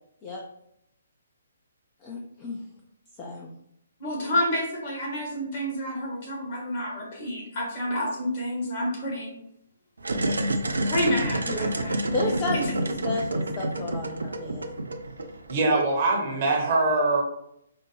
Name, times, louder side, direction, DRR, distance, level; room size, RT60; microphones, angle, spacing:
voice 1, 2.0-2.6 3.2-3.5 11.5-11.7 12.1-14.7, left 2 dB, 25° left, 0 dB, 0.4 m, -32 dB
voice 2, 4.0-9.3 10.8-12.7, equal, 40° left, -2 dB, 1.3 m, -29 dB
sound 1, 10.0-15.8, right 1 dB, 65° right, 0.4 m, -28 dB
voice 3, 15.5-17.2, right 2 dB, 35° right, 0 dB, 0.8 m, -23 dB
4.9 x 2.1 x 3.1 m, 0.76 s
figure-of-eight pair, 130°, 0 cm